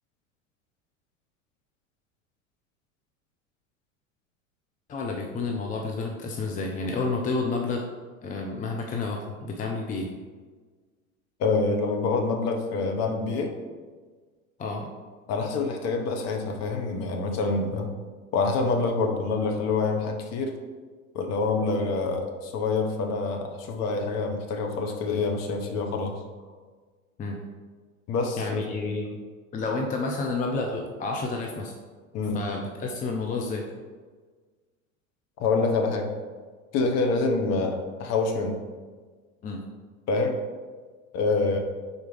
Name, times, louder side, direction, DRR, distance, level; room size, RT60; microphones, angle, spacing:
voice 1, 4.9-7.8 8.2-10.1 14.6-14.9 27.2-27.4 28.4-29.2 29.5-31.7 32.3-33.7 39.4-39.6, left 3 dB, 20° left, 1 dB, 0.6 m, -30 dB
voice 2, 11.4-13.5 15.3-17.9 18.3-20.6 21.1-26.1 28.1-28.6 32.1-32.4 35.4-36.1 36.7-38.5 40.1-40.4 41.1-41.6, left 3 dB, 40° left, 4 dB, 1.0 m, -26 dB
4.7 x 4.2 x 5.0 m, 1.4 s
figure-of-eight pair, 75°, 41 cm